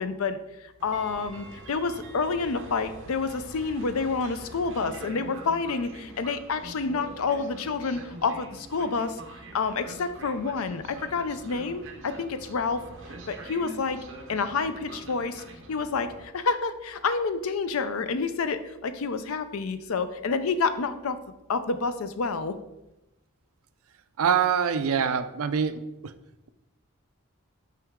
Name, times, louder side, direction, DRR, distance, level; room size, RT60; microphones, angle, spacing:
voice 1, 0.0-9.2 9.5-12.8 13.3-14.0 14.3-21.2 21.5-22.6, left 4 dB, 75° left, 11 dB, 0.5 m, -29 dB
Train, 0.8-16.2, right 2 dB, 55° right, 0.9 m, -44 dB
voice 2, 24.2-26.1, right 7 dB, 80° right, 12 dB, 0.4 m, -25 dB
6.0 x 4.5 x 3.6 m, 0.93 s
head